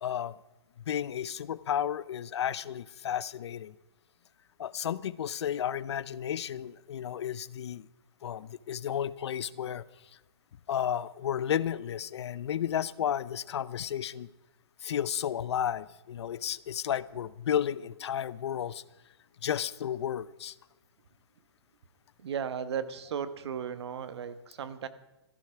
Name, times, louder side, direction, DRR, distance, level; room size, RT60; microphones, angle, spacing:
voice 1, 0.0-0.3 0.9-3.7 4.6-7.9 8.2-9.8 10.7-14.3 14.8-18.8 19.4-20.5, left 9 dB, 70° left, 18 dB, 0.6 m, -32 dB
voice 2, 22.2-24.9, right 7 dB, 70° right, 12 dB, 1.3 m, -35 dB
14.5 x 11.0 x 5.9 m, 1.1 s
hypercardioid pair, 140°, 14 cm